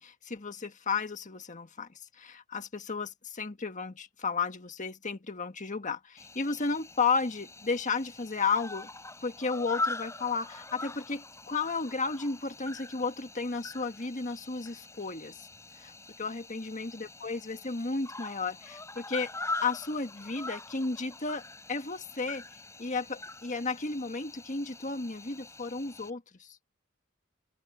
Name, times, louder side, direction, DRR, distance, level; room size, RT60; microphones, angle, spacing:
voice 1, 0.0-1.9 2.2-8.9 9.2-15.4 15.8-15.9 16.2-19.3 19.6-21.4 21.7-22.4 22.8-26.5, left 4 dB, 40° left, 1.5 m, -33 dB
Cricket, 6.2-26.1, left 2 dB, 15° left, 5.1 m, -42 dB
open air
head